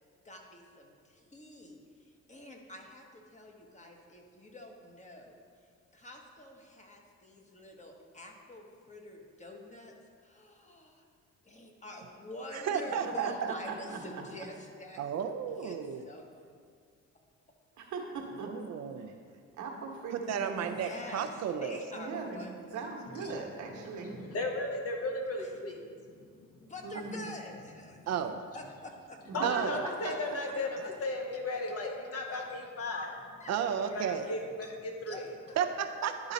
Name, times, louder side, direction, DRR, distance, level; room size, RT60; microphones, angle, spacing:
voice 1, 0.2-5.4 5.9-9.9 10.2-11.0 11.4-15.3 15.6-15.8 16.0-16.5 20.7-22.9 25.4-25.5 26.6-28.1 28.5-29.2 32.3-32.4 32.9-33.1 33.4-33.5 35.1-35.6, left 1 dB, 25° left, 1 dB, 1.1 m, -47 dB
voice 2, 12.5-13.5 15.0-16.0 18.5-19.1 20.1-21.8 28.1-28.4 29.4-29.8 33.5-34.3 35.6-36.3, right 7 dB, 60° right, 7 dB, 0.5 m, -33 dB
voice 3, 17.8-19.1 19.6-20.8 21.9-22.4 22.7-24.2 26.8-27.3 29.3-30.4, right 4 dB, 75° right, 0 dB, 1.2 m, -40 dB
voice 4, 24.0-26.7 27.9-28.1 29.3-33.1 33.9-35.2, left 2 dB, 50° left, 1 dB, 1.2 m, -36 dB
11.0 x 3.9 x 4.0 m, 2.1 s
cardioid pair, 90°, 30 cm